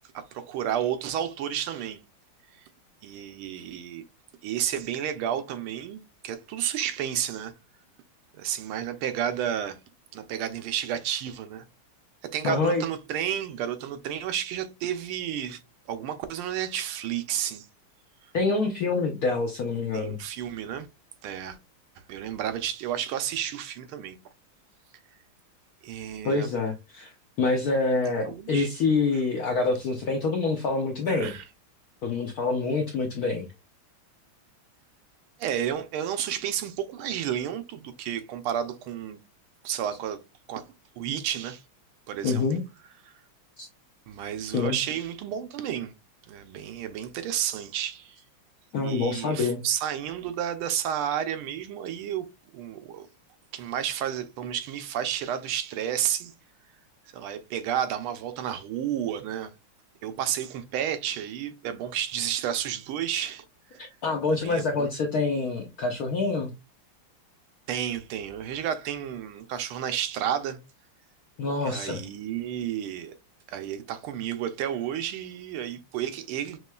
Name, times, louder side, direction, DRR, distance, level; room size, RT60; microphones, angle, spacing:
voice 1, 0.1-2.0 3.0-4.0 4.4-7.5 8.4-9.8 10.1-11.7 12.3-15.6 15.9-17.7 19.9-20.9 21.2-21.6 22.1-24.2 25.8-26.5 28.2-28.7 31.1-31.4 35.4-39.2 39.6-40.2 40.5-40.6 41.0-41.6 42.1-42.5 44.1-45.9 46.3-48.2 48.8-52.3 52.5-53.1 53.5-56.3 57.1-59.5 60.0-63.4 63.7-63.8 64.3-64.9 67.7-70.6 71.6-73.1 73.5-76.6, right 10 dB, 90° right, 1.5 m, -31 dB
voice 2, 12.4-12.8 18.3-20.2 26.2-27.1 27.4-31.3 32.0-33.4 42.2-42.6 43.6-43.7 44.5-44.8 48.7-49.6 63.8-66.5 71.4-72.0, left 3 dB, 75° left, 0.8 m, -26 dB
5.3 x 3.1 x 2.2 m
omnidirectional pair, 2.3 m